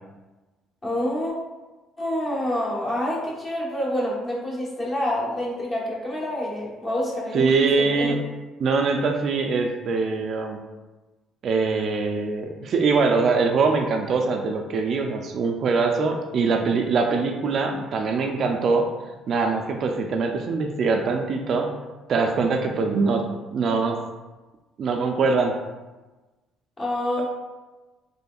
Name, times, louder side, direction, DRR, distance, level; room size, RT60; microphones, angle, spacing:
voice 1, 0.8-1.3 2.0-8.2 26.8-27.2, left 1 dB, 25° left, -5 dB, 1.1 m, -27 dB
voice 2, 7.3-8.2 8.6-10.6 11.4-18.9 19.3-21.7 22.1-23.2 23.5-24.0 24.8-25.5, right 4 dB, 50° right, 3 dB, 0.3 m, -23 dB
4.2 x 3.0 x 2.3 m, 1.2 s
cardioid pair, 130°, 0 cm